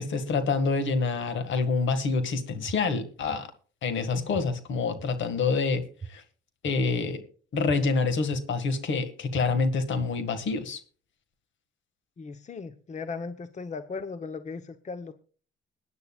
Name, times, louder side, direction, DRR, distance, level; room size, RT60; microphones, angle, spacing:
voice 1, 0.0-3.5 3.8-5.8 6.1-6.2 6.6-7.2 7.5-10.8, left 4 dB, 70° left, 10 dB, 1.9 m, -27 dB
sound 1, 2.7-2.8 3.3-3.4 4.3-4.4 5.0-5.1 6.0-6.1 6.6-6.7 7.7-7.8 8.3-8.4 9.3-9.4 10.0-10.1, right 5 dB, 25° right, 1.2 m, -39 dB
voice 2, 12.2-15.1, left 4 dB, 35° left, 10 dB, 0.9 m, -37 dB
21.0 x 9.7 x 2.4 m, 0.39 s
cardioid pair, 90°, 20 cm